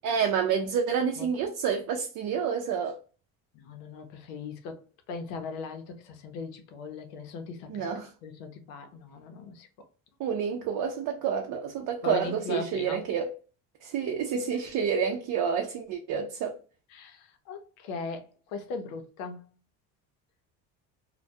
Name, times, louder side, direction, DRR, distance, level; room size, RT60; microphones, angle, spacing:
voice 1, 0.0-3.0 7.7-8.1 10.2-13.3 13.8-16.6, right 7 dB, 55° right, 0.5 m, -29 dB
voice 2, 3.5-7.8 8.2-9.7 12.0-13.0 16.9-19.4, left 4 dB, 85° left, 0.7 m, -39 dB
2.2 x 2.2 x 2.6 m
supercardioid pair, 95°, 39 cm